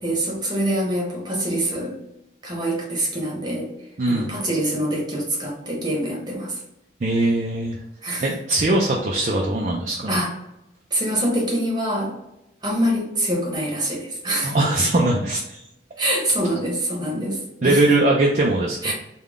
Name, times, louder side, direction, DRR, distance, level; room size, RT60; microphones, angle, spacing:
voice 1, 0.0-1.9 2.4-3.7 4.1-6.6 8.0-8.3 10.1-10.3 10.9-12.1 12.6-14.5 16.0-17.8 18.8-18.9, right 1 dB, 25° right, -2 dB, 1.0 m, -25 dB
voice 2, 4.0-4.3 7.0-7.8 8.2-10.2 14.4-15.6 17.2-17.3 17.6-18.9, right 2 dB, 40° right, -2 dB, 0.4 m, -21 dB
3.6 x 2.3 x 3.5 m, 0.87 s
head